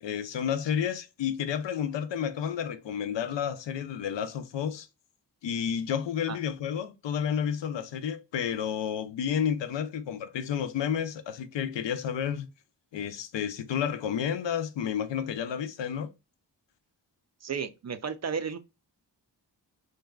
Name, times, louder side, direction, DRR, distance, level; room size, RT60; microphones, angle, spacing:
voice 1, 0.0-4.9 5.4-12.5 12.9-16.1, left 8 dB, 75° left, 0.5 m, -31 dB
voice 2, 17.4-18.6, right 6 dB, 40° right, 0.4 m, -33 dB
2.6 x 2.2 x 2.2 m
cardioid pair, 45°, 44 cm